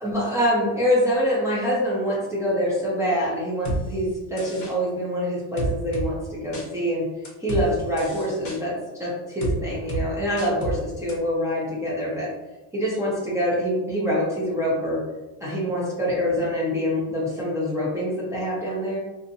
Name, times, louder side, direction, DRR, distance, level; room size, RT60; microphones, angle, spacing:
voice 1, 0.0-7.1 7.4-8.7 9.0-12.3 12.7-15.0 15.4-19.0, equal, 5° right, -7 dB, 0.6 m, -25 dB
sound 1, 3.6-3.8 4.4-4.7 5.6-6.1 6.5-6.7 7.2-7.6 8.0-8.6 9.4-9.5 9.9-10.0 10.4-10.7 11.1-11.2, right 2 dB, 40° left, 0.8 m, -28 dB
2.7 x 2.1 x 2.6 m, 1.1 s
cardioid pair, 100°, 44 cm